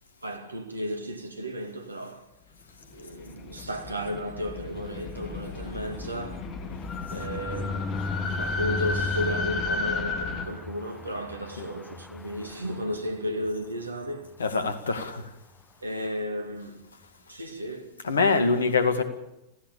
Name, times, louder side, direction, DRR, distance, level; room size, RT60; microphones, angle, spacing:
voice 1, 0.2-2.3 2.9-6.8 7.1-14.4 15.8-16.9 17.3-17.9, equal, 80° right, 2.3 m, -34 dB
sound 1, 3.0-10.5, left 4 dB, 35° left, 2.6 m, -33 dB
sound 2, 5.1-13.5 13.9-14.1 14.4-14.5 14.7-15.0, left 3 dB, 15° left, 0.9 m, -38 dB
voice 2, 14.4-15.3 18.0-19.0, left 4 dB, 70° left, 2.2 m, -24 dB
27.0 x 16.5 x 7.1 m
figure-of-eight pair, 90°, 0 cm